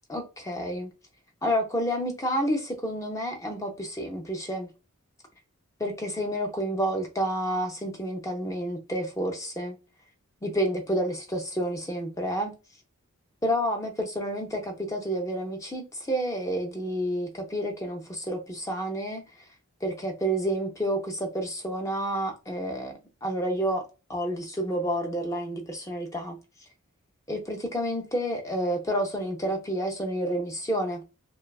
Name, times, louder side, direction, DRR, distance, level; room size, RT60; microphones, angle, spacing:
voice 1, 0.1-0.9 1.4-4.7 5.8-9.8 10.4-12.5 13.4-19.2 19.8-22.9 23.2-23.8 24.1-26.4 27.3-31.0, equal, 15° left, 0.4 m, -29 dB
2.6 x 2.2 x 2.2 m
head